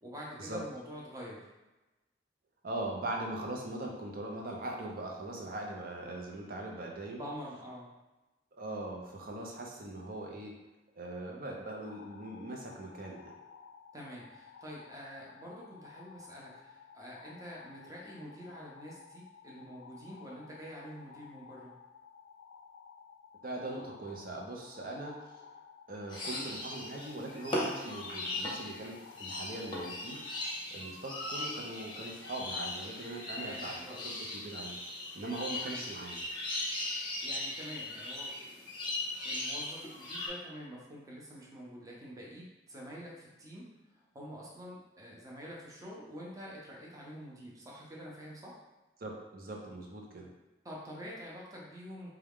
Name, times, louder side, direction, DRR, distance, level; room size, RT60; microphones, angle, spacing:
voice 1, 0.0-1.4 7.2-7.9 13.9-21.7 33.3-34.1 35.6-35.8 37.2-38.7 39.2-43.7 43.9-48.5 50.6-52.1, equal, 20° right, -4 dB, 0.8 m, -47 dB
voice 2, 2.6-7.2 8.5-10.5 11.0-13.4 23.4-25.4 25.9-30.2 30.7-33.8 34.0-34.8 35.1-36.2 49.0-50.3, right 1 dB, 50° right, 0 dB, 0.7 m, -41 dB
sound 1, 11.8-30.6, left 6 dB, 85° left, 0.3 m, -55 dB
sound 2, 26.1-40.3, left 1 dB, 25° left, 0.7 m, -38 dB
4.4 x 2.4 x 3.6 m, 1.1 s
head